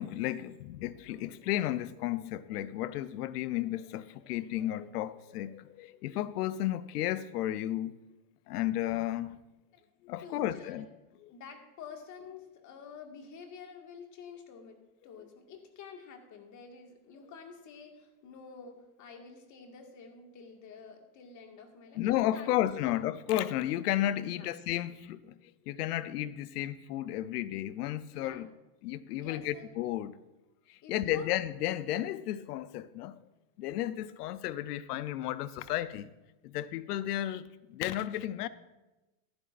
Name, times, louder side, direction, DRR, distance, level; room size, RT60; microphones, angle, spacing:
voice 1, 0.0-7.9 8.5-9.4 10.0-10.8 11.2-11.3 22.0-25.3 25.7-28.5 28.8-30.2 30.7-33.2 33.6-36.1 36.4-38.5, left 13 dB, 85° left, 0.7 m, -33 dB
voice 2, 10.2-10.9 11.3-14.8 15.0-23.0 24.2-24.5 28.1-28.4 29.1-29.7 30.8-31.3, left 6 dB, 40° left, 1.9 m, -49 dB
14.5 x 11.5 x 2.5 m
supercardioid pair, 125°, 45 cm